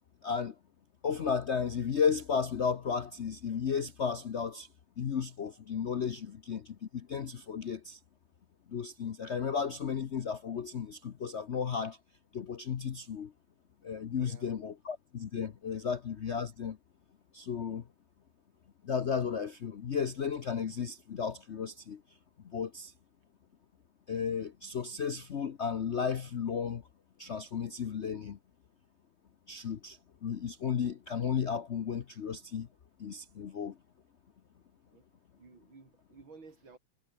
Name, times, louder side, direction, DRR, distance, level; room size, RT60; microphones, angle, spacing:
voice 1, 0.2-0.5 1.0-4.7 5.0-6.7 6.9-8.0 8.7-12.0 12.3-13.3 13.8-16.8 17.3-17.8 18.8-22.0 22.5-22.9 24.1-26.8 27.2-28.4 29.5-32.7 33.0-33.7, left 6 dB, 70° left, 0.6 m, -34 dB
voice 2, 14.1-14.8 15.7-15.9 34.9-35.1 35.4-36.8, right 4 dB, 60° right, 4.8 m, -55 dB
omnidirectional pair, 2.4 m